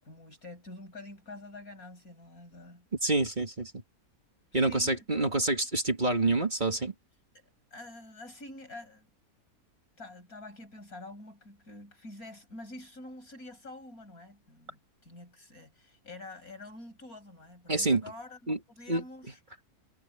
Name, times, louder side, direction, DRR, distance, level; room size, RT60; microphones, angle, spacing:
voice 1, 0.0-2.9 4.5-5.3 7.7-9.1 10.0-19.4, left 2 dB, 80° left, 7.9 m, -47 dB
voice 2, 3.0-3.8 4.5-6.9 17.7-18.0 18.5-18.6 18.9-19.0, right 2 dB, 30° right, 2.4 m, -27 dB
omnidirectional pair, 1.5 m